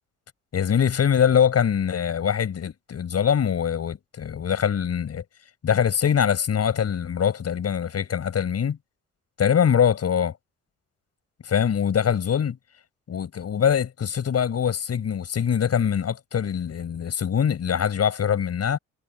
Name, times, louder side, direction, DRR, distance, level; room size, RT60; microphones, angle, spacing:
voice 1, 0.5-5.2 5.6-8.8 9.4-10.3 11.4-12.6 13.1-18.8, left 8 dB, 55° left, 7.8 m, -23 dB
cardioid pair, 90°, 30 cm